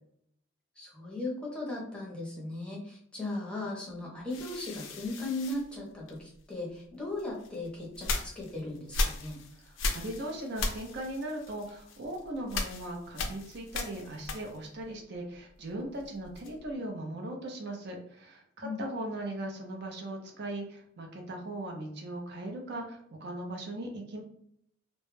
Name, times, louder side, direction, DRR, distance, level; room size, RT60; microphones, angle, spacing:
voice 1, 0.8-9.4 18.6-18.8, left 2 dB, 5° left, -4 dB, 0.6 m, -37 dB
sound 1, 4.3-6.5 7.2-14.8 15.1-16.7, left 2 dB, 70° left, 0.4 m, -37 dB
voice 2, 9.6-24.2, right 1 dB, 60° right, 1 dB, 0.5 m, -39 dB
2.2 x 2.0 x 3.0 m, 0.70 s
head